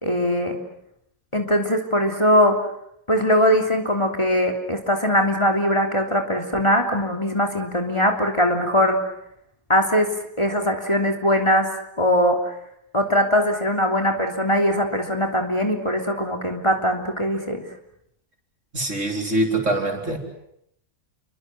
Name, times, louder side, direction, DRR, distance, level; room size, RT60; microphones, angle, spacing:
voice 1, 0.0-0.6 1.3-2.6 3.1-9.0 9.7-10.1 10.4-11.7 12.0-12.5 12.9-17.6, equal, 20° left, 2 dB, 3.2 m, -21 dB
voice 2, 18.7-20.2, right 2 dB, 60° right, 2 dB, 5.1 m, -23 dB
30.0 x 24.0 x 8.1 m, 0.76 s
omnidirectional pair, 1.5 m